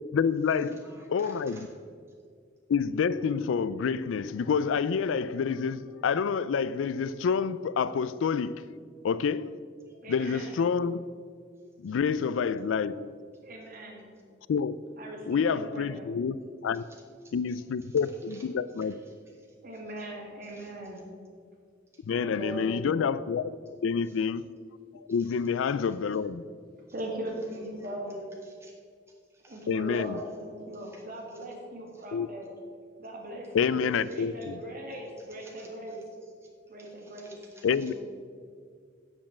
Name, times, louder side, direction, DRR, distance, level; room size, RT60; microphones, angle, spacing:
voice 1, 0.1-0.8 1.1-1.6 2.7-8.6 9.0-9.6 10.1-11.1 11.8-13.2 14.5-14.8 15.3-16.4 16.6-16.8 17.3-18.9 22.1-23.5 23.8-24.5 25.1-26.4 29.7-30.2 32.1-32.3 33.5-34.5 37.6-37.9, left 6 dB, 90° left, 0.4 m, -28 dB
voice 2, 0.6-1.7 9.9-10.0 10.4-10.5 11.6-12.0 16.7-19.5 20.4-20.7 21.9-22.0 24.0-24.2 25.1-25.4 25.7-26.2 27.4-27.9 28.4-28.7 29.3-30.0 30.7-31.0 31.3-31.4 31.9-32.0 33.9-34.2 35.2-36.5 36.8-37.9, right 1 dB, 15° right, 2.0 m, -56 dB
voice 3, 10.0-10.6 13.4-14.1 15.0-16.1 19.6-21.0 22.2-22.8 26.9-28.2 29.5-32.5 33.0-36.0 36.7-37.3 37.7-37.9, right 1 dB, 50° right, 2.1 m, -40 dB
7.5 x 7.2 x 7.2 m
head